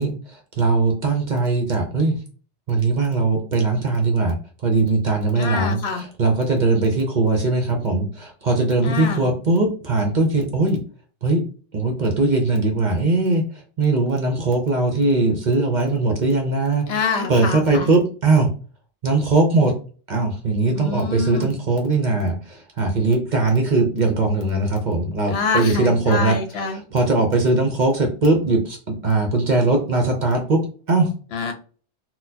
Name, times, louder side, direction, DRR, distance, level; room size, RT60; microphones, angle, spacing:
voice 1, 0.0-2.2 2.7-4.4 4.6-10.8 11.2-11.4 11.7-13.4 13.8-16.9 17.3-18.5 19.0-19.7 20.1-26.4 26.9-31.1, right 3 dB, 50° right, 2 dB, 0.7 m, -20 dB
voice 2, 5.4-6.0 8.8-9.3 16.9-17.9 20.7-21.6 25.3-26.8 31.3-31.5, left 4 dB, 65° left, 5 dB, 0.9 m, -26 dB
4.0 x 2.2 x 2.7 m, 0.39 s
omnidirectional pair, 1.2 m